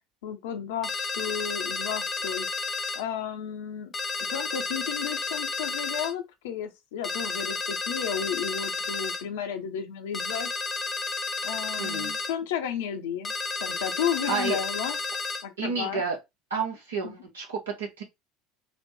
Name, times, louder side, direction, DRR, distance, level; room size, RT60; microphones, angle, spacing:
voice 1, 0.2-2.5 2.9-3.9 4.3-10.5 11.4-13.3 13.6-15.0 15.4-16.0 17.0-17.1, left 8 dB, 65° left, 0.9 m, -33 dB
sound 1, 0.8-3.0 3.9-6.1 7.0-9.2 10.1-12.3 13.2-15.4, left 4 dB, 25° left, 1.0 m, -32 dB
voice 2, 11.8-12.1 14.3-14.6 15.6-16.2 16.5-18.0, right 5 dB, 75° right, 1.7 m, -30 dB
4.1 x 2.6 x 4.6 m
figure-of-eight pair, 70°, 0 cm